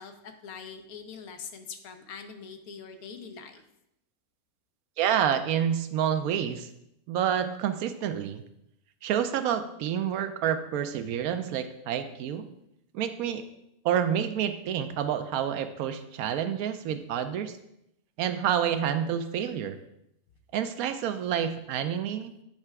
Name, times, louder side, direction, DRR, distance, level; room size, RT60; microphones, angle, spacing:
voice 1, 0.0-3.6, left 6 dB, 75° left, 6 dB, 1.2 m, -43 dB
voice 2, 5.0-6.7 7.1-8.4 9.0-12.5 12.9-13.4 13.8-17.5 18.2-19.8 20.5-22.3, right 9 dB, 75° right, 9 dB, 1.0 m, -28 dB
8.8 x 3.3 x 4.6 m, 0.82 s
omnidirectional pair, 1.6 m